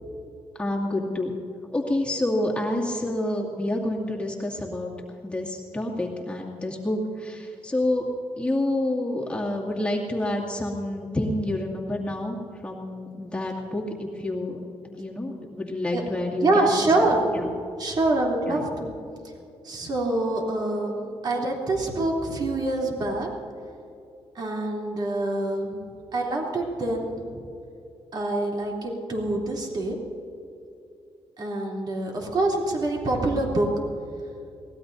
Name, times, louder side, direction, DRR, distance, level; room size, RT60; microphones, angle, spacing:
voice 1, 0.6-1.3 1.7-4.9 5.2-8.0 8.4-12.4 12.6-14.6 14.8-16.7 17.0-17.1 17.4-17.5 18.5-18.6, left 1 dB, 10° left, -3 dB, 2.2 m, -28 dB
voice 2, 16.4-17.2 17.8-18.9 19.6-23.3 24.3-25.8 26.1-27.1 28.1-30.0 31.4-33.7, right 2 dB, 45° right, -2 dB, 3.1 m, -25 dB
23.5 x 18.5 x 2.7 m, 2.7 s
cardioid pair, 125°, 10 cm